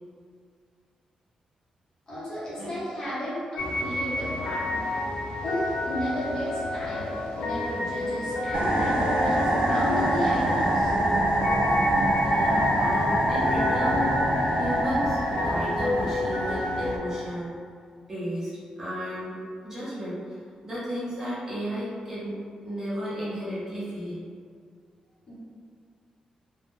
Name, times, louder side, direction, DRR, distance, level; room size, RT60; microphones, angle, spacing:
voice 1, 2.1-4.9 5.4-10.9 25.3-25.4, equal, 30° left, -11 dB, 0.8 m, -33 dB
sound 1, 3.6-17.0, left 2 dB, 80° left, 0.3 m, -30 dB
sound 2, 8.5-17.4, right 1 dB, 85° right, 0.4 m, -25 dB
voice 2, 12.2-14.1 14.6-17.6 18.1-19.4 19.6-20.4 20.6-22.4 22.6-24.2, equal, 25° right, -11 dB, 0.7 m, -33 dB
2.1 x 2.1 x 3.0 m, 2.1 s
wide cardioid pair, 170°, 2 cm